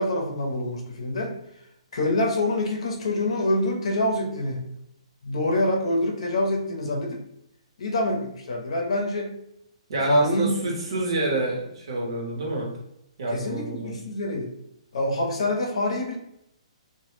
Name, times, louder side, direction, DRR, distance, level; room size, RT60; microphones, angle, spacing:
voice 1, 0.0-1.3 1.9-4.6 5.2-7.2 7.8-9.4 10.1-10.5 13.3-14.5 14.9-16.2, left 1 dB, 55° left, 0 dB, 0.6 m, -26 dB
voice 2, 9.9-12.7 13.2-13.9, right 2 dB, 50° right, -2 dB, 0.8 m, -27 dB
2.2 x 2.0 x 3.1 m, 0.78 s
hypercardioid pair, 180°, 4 cm